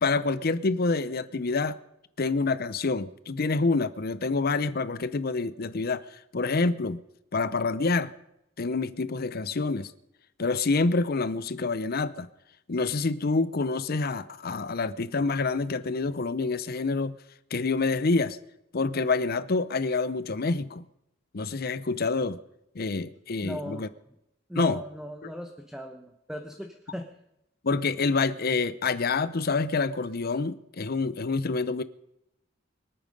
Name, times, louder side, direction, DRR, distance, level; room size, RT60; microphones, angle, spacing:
voice 1, 0.0-1.8 2.2-6.0 6.3-7.0 7.3-8.1 8.6-9.9 10.4-12.3 12.7-17.2 17.5-18.4 18.7-20.8 21.3-22.4 22.7-23.9 24.6-24.8 25.2-25.3 27.6-31.8, left 3 dB, 50° left, 0.7 m, -27 dB
voice 2, 23.4-23.9 24.5-27.1, equal, 5° right, 0.9 m, -38 dB
24.5 x 8.8 x 5.4 m
head